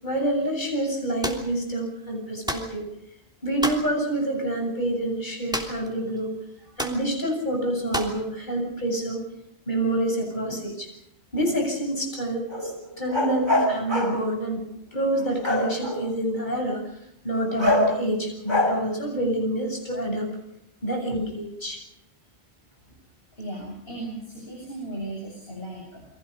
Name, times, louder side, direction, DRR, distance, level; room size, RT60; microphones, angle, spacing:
voice 1, 0.0-2.9 3.4-6.3 6.8-9.2 9.7-10.9 11.3-12.7 13.0-16.8 17.2-20.3 20.8-21.8, right 1 dB, 45° left, 2 dB, 8.3 m, -27 dB
sound 1, 1.2-1.5 2.5-2.7 3.6-3.9 5.5-5.9 6.2-6.3 6.8-7.0 7.9-8.2, equal, 5° right, 3.1 m, -30 dB
sound 2, 12.5-14.2 15.3-16.1 17.6-18.0 18.5-18.8, left 1 dB, 45° right, 5.9 m, -24 dB
voice 2, 23.3-26.1, right 2 dB, 60° left, -1 dB, 7.3 m, -36 dB
29.5 x 23.5 x 5.4 m, 0.80 s
omnidirectional pair, 1.1 m